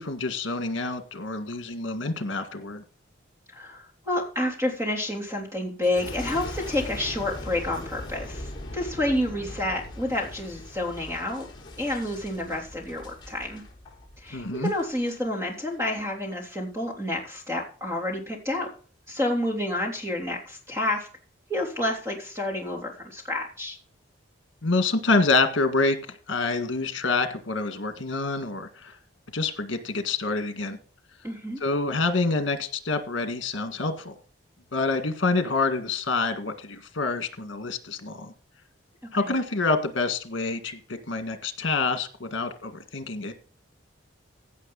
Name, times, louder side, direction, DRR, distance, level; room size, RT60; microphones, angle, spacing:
voice 1, 0.0-2.8 14.3-14.7 24.6-26.0 26.3-28.9 29.3-30.8 31.6-34.1 34.7-38.3 39.1-40.8 41.1-43.3, left 3 dB, 70° left, 7 dB, 1.8 m, -27 dB
voice 2, 3.5-11.5 11.8-13.6 14.2-18.7 19.1-21.1 21.5-23.8 31.2-31.6 39.2-39.3, left 1 dB, 15° right, 0 dB, 3.3 m, -29 dB
Boom, 5.8-15.2 15.7-16.2, left 1 dB, 25° left, 4.1 m, -40 dB
16.0 x 6.4 x 4.0 m, 0.40 s
head